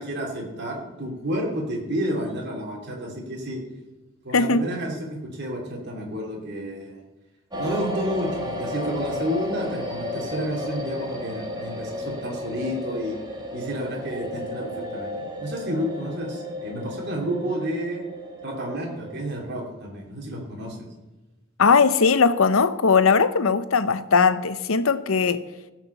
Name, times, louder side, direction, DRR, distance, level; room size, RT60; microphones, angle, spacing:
voice 1, 0.0-3.6 4.2-7.0 7.6-13.1 13.5-18.0 18.4-20.9, equal, 55° right, -2 dB, 2.9 m, -30 dB
voice 2, 4.3-4.7 21.6-25.4, left 5 dB, 80° left, 13 dB, 0.7 m, -19 dB
sound 1, 7.5-19.4, left 1 dB, 20° right, 1.8 m, -33 dB
17.0 x 5.9 x 6.9 m, 1.1 s
head